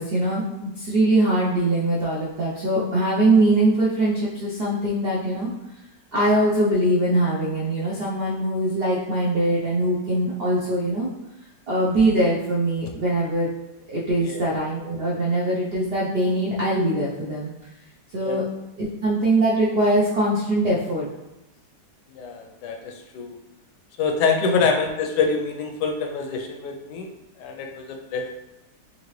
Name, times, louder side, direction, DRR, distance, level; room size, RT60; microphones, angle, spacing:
voice 1, 0.0-5.5 6.1-11.1 11.7-13.5 13.9-17.5 18.1-18.4 18.8-21.1 24.4-24.6, right 1 dB, 80° right, -6 dB, 0.5 m, -22 dB
voice 2, 22.1-23.4 24.0-27.1 27.4-28.3, left 5 dB, 75° left, 3 dB, 1.1 m, -25 dB
3.8 x 2.8 x 3.1 m, 0.94 s
omnidirectional pair, 1.9 m